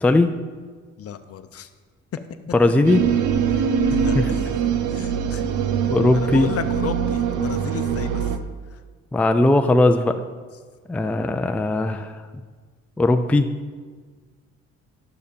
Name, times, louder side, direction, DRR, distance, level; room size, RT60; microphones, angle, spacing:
voice 1, 0.0-0.4 2.5-3.1 4.1-4.3 5.9-6.5 9.1-10.2 10.9-12.2 13.0-13.5, left 2 dB, 5° left, 7 dB, 0.4 m, -19 dB
voice 2, 1.0-1.7 3.5-3.6 3.9-4.4 4.9-5.4 6.1-8.3 8.7-8.8, left 8 dB, 50° left, 10 dB, 0.7 m, -33 dB
sound 1, 2.8-8.4, right 7 dB, 75° right, 0.7 m, -23 dB
9.4 x 6.8 x 5.1 m, 1.5 s
cardioid pair, 90°, 30 cm